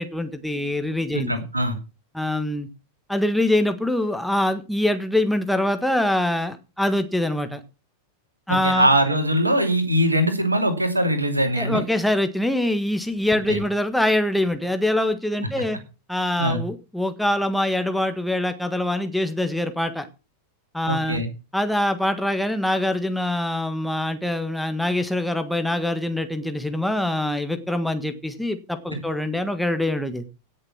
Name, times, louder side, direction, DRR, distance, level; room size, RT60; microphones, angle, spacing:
voice 1, 0.0-1.3 2.1-2.7 3.1-7.6 8.5-8.9 11.6-15.8 16.1-20.1 20.7-21.2 21.5-30.2, left 1 dB, ahead, 7 dB, 1.5 m, -24 dB
voice 2, 1.1-1.8 8.5-11.8 13.5-13.6 16.4-16.6 20.9-21.3 28.9-29.0, right 1 dB, 85° right, 8 dB, 2.7 m, -21 dB
17.0 x 6.7 x 6.1 m, 0.32 s
figure-of-eight pair, 90°, 0 cm